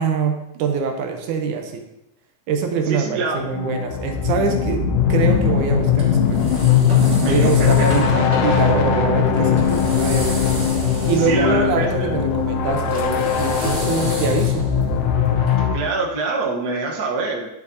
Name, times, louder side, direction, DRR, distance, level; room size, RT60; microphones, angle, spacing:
voice 1, 0.0-1.9 2.5-4.8 5.1-6.5 7.2-10.3 11.1-14.7, right 5 dB, 80° right, 4 dB, 2.2 m, -24 dB
voice 2, 2.9-3.4 7.2-7.9 8.6-8.7 11.2-12.2 15.7-17.5, right 3 dB, 55° right, -1 dB, 1.1 m, -25 dB
sound 1, 3.4-15.8, left 8 dB, 80° left, 2.4 m, -19 dB
sound 2, 5.3-15.5, right 2 dB, 30° right, 1.2 m, -32 dB
12.0 x 6.7 x 2.8 m, 0.89 s
omnidirectional pair, 3.7 m